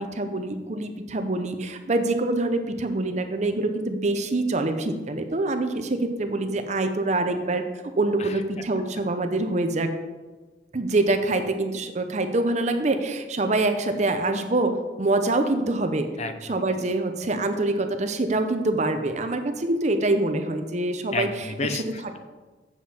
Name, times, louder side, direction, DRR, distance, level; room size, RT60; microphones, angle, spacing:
voice 1, 0.0-7.6 8.0-9.9 10.7-16.1 16.5-21.3, right 2 dB, 40° right, 7 dB, 0.7 m, -25 dB
voice 2, 16.2-16.6 21.1-22.2, left 3 dB, 40° left, 8 dB, 0.6 m, -31 dB
7.6 x 7.5 x 4.3 m, 1.3 s
head